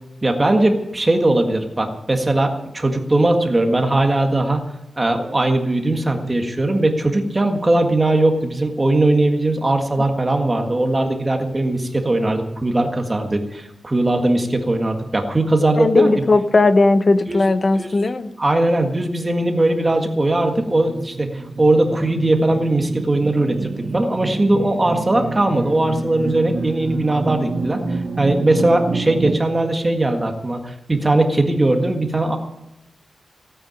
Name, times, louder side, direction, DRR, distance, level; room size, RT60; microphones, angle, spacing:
voice 1, 0.2-4.6 5.0-16.1 17.3-17.4 17.8-17.9 18.4-32.4, right 2 dB, 20° right, 4 dB, 1.7 m, -19 dB
voice 2, 15.8-18.3, left 3 dB, 35° left, 11 dB, 0.9 m, -16 dB
sound 1, 19.9-29.4, right 3 dB, 55° right, 1.1 m, -28 dB
17.0 x 8.8 x 8.9 m, 0.89 s
wide cardioid pair, 145°, 0 cm